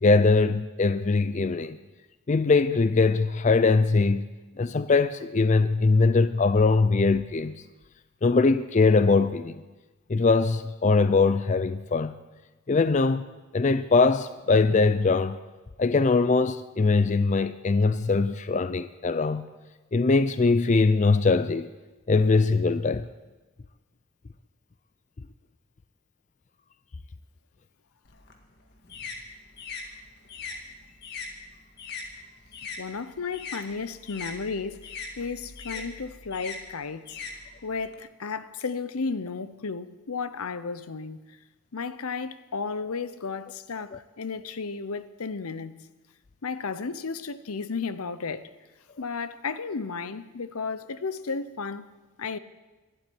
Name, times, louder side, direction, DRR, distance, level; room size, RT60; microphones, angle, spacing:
voice 1, 0.0-1.8 2.3-4.3 4.6-7.6 8.2-9.6 10.1-12.1 12.7-13.3 13.5-15.4 15.8-19.5 19.9-21.7 22.1-23.0, left 3 dB, 35° left, 0.4 m, -22 dB
sound 1, 28.1-32.8 33.1-38.0, left 4 dB, 50° left, 1.8 m, -40 dB
voice 2, 32.8-37.2 37.6-41.2 41.7-45.7 46.4-48.5 49.0-51.9 52.2-52.4, left 4 dB, 80° left, 0.8 m, -33 dB
12.0 x 12.0 x 9.5 m
head